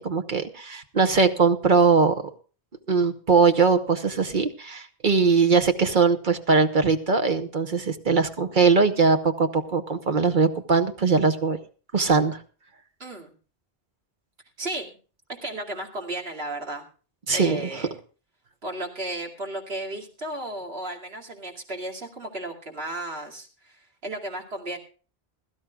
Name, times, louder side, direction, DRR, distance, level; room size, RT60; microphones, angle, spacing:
voice 1, 0.0-2.2 2.9-11.6 11.9-12.4 17.3-17.6, right 4 dB, 50° right, 7 dB, 1.1 m, -21 dB
voice 2, 13.0-13.3 14.6-15.0 15.4-16.9 17.3-17.9 18.6-24.8, right 1 dB, 75° right, 1 dB, 2.8 m, -34 dB
21.5 x 12.5 x 2.3 m, 0.37 s
omnidirectional pair, 1.0 m